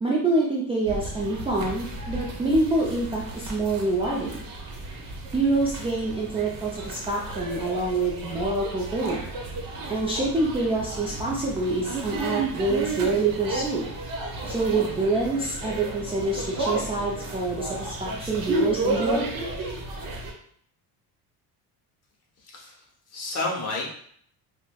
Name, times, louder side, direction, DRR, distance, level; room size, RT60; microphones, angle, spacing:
voice 1, 0.0-4.4 5.3-9.2 9.9-13.9 14.5-19.2, right 2 dB, 15° right, -5 dB, 0.4 m, -26 dB
sound 1, 0.9-20.3, right 2 dB, 60° right, 0.9 m, -33 dB
voice 2, 22.4-23.9, left 2 dB, 40° left, -2 dB, 0.9 m, -31 dB
4.8 x 2.2 x 2.2 m, 0.63 s
cardioid pair, 135°, 39 cm